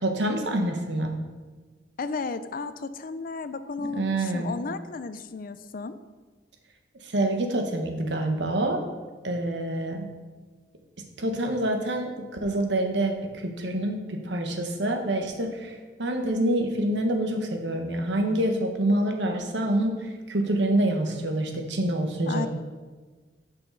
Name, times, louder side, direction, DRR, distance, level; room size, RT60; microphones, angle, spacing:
voice 1, 0.0-1.1 3.9-4.5 7.0-8.8 9.2-10.1 11.2-12.1 12.4-22.5, right 1 dB, 80° right, 4 dB, 1.2 m, -26 dB
voice 2, 2.0-6.0 22.3-22.5, left 4 dB, 55° left, 12 dB, 0.5 m, -33 dB
10.5 x 5.7 x 4.0 m, 1.3 s
head